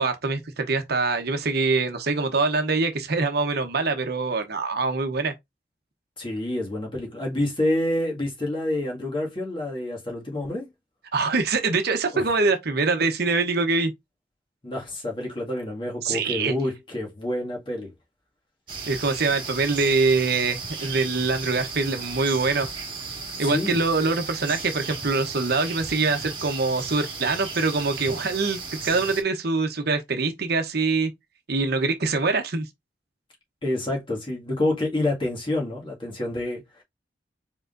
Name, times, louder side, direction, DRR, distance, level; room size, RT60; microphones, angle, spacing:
voice 1, 0.0-5.3 11.1-13.9 16.0-16.5 18.9-22.7 23.4-31.1 31.5-32.6, right 3 dB, 60° right, 0.9 m, -24 dB
voice 2, 6.2-10.7 12.1-12.2 14.6-17.9 23.4-23.8 33.6-36.8, left 1 dB, 30° left, 1.9 m, -28 dB
sound 1, 18.7-29.2, right 4 dB, 30° right, 1.6 m, -35 dB
4.7 x 3.7 x 2.5 m
head